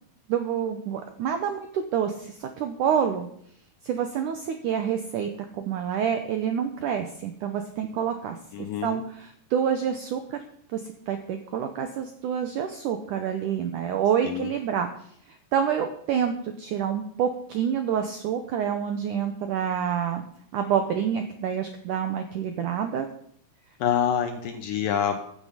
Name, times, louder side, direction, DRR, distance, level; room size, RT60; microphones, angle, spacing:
voice 1, 0.3-3.3 3.9-8.4 8.8-10.4 10.7-10.8 11.1-14.9 15.5-20.2 20.5-23.1, right 8 dB, 85° right, 6 dB, 1.8 m, -27 dB
voice 2, 8.5-9.0 14.2-14.5 23.8-25.2, left 9 dB, 75° left, 6 dB, 2.1 m, -26 dB
15.0 x 9.3 x 5.1 m, 0.67 s
omnidirectional pair, 4.8 m